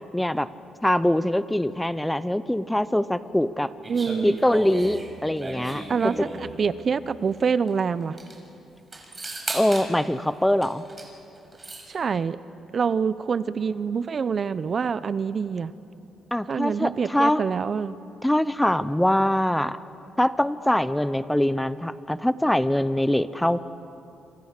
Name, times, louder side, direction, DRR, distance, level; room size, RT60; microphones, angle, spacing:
voice 1, 0.1-0.5 0.8-3.7 4.2-5.8 9.5-10.8 16.3-17.4 18.2-19.8 20.2-23.6, left 1 dB, 5° left, 14 dB, 0.8 m, -23 dB
sound 1, 3.8-6.6 7.7-7.8 8.0-8.4 8.9-9.9 10.6-11.1 11.4-11.9, right 2 dB, 25° right, 5.6 m, -35 dB
voice 2, 3.9-4.4 5.9-8.2 11.9-12.4 12.7-15.7 16.5-17.9, right 6 dB, 45° right, 15 dB, 0.8 m, -26 dB
28.0 x 25.5 x 6.8 m, 2.8 s
cardioid pair, 90°, 0 cm